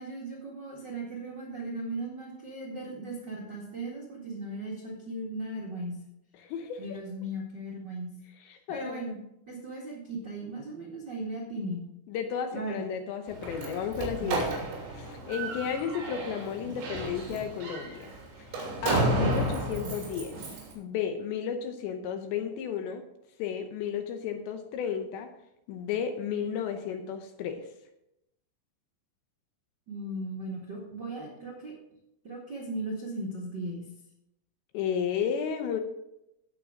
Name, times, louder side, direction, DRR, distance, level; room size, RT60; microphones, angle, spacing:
voice 1, 0.0-6.0 6.8-8.1 8.7-9.2 9.5-11.8 12.5-12.9 14.2-14.4 19.8-19.9 29.9-31.7 32.2-33.9, right 1 dB, 85° right, -4 dB, 0.9 m, -37 dB
voice 2, 6.4-6.8 8.5-9.0 12.1-14.7 14.9-18.1 18.5-20.4 20.8-23.0 23.4-25.3 25.7-27.7 34.7-35.8, left 7 dB, 75° left, 6 dB, 2.8 m, -33 dB
Slam, 13.3-20.7, right 2 dB, 65° right, 5.4 m, -32 dB
17.5 x 6.8 x 3.7 m, 0.84 s
omnidirectional pair, 5.7 m